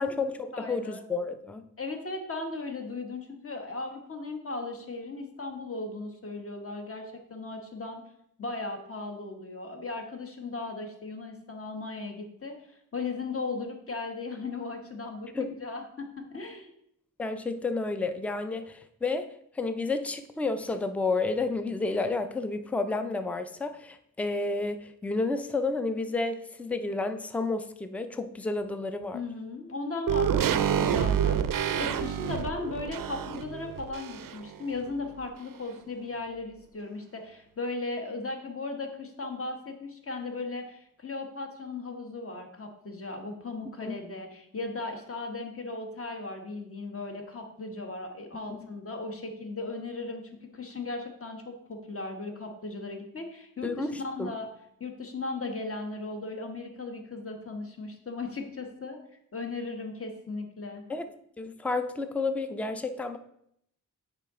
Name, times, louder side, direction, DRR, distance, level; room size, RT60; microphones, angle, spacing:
voice 1, 0.0-1.6 15.3-15.5 17.2-19.3 19.5-29.2 43.8-44.0 53.6-54.4 60.9-61.1 61.4-63.2, left 3 dB, 5° left, 9 dB, 0.4 m, -31 dB
voice 2, 0.5-1.0 1.8-8.0 8.4-16.7 29.1-54.5 54.8-59.0 59.3-60.8, left 3 dB, 40° left, 4 dB, 1.1 m, -37 dB
sound 1, 30.1-34.6 34.8-34.9, right 8 dB, 75° right, 0.5 m, -28 dB
8.9 x 4.9 x 3.6 m, 0.74 s
wide cardioid pair, 135°, 34 cm